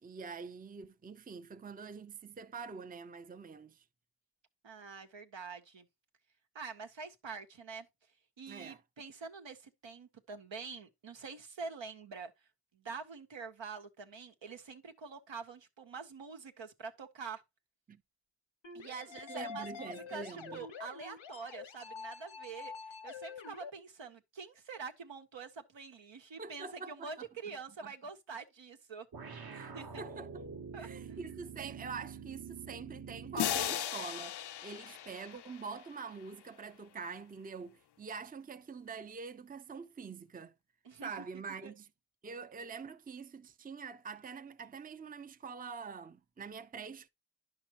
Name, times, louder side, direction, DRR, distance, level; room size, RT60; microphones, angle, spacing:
voice 1, 0.0-3.8 8.5-8.8 17.9-18.0 18.8-20.7 26.4-27.6 27.8-27.9 29.5-30.5 30.8-40.5 41.0-41.9 42.2-47.1, right 5 dB, 20° right, 0.5 m, -45 dB
voice 2, 4.6-5.9 6.5-7.9 8.4-12.3 12.7-17.4 18.7-29.1 29.6-30.0 30.7-31.2 40.8-41.7, right 5 dB, 80° right, 1.2 m, -46 dB
sound 1, 18.6-23.7, left 6 dB, 85° left, 1.1 m, -47 dB
sound 2, 29.1-33.9, right 6 dB, 55° right, 1.2 m, -46 dB
sound 3, 33.4-36.2, left 11 dB, 60° left, 0.5 m, -37 dB
10.0 x 5.8 x 2.9 m
cardioid pair, 40°, 45 cm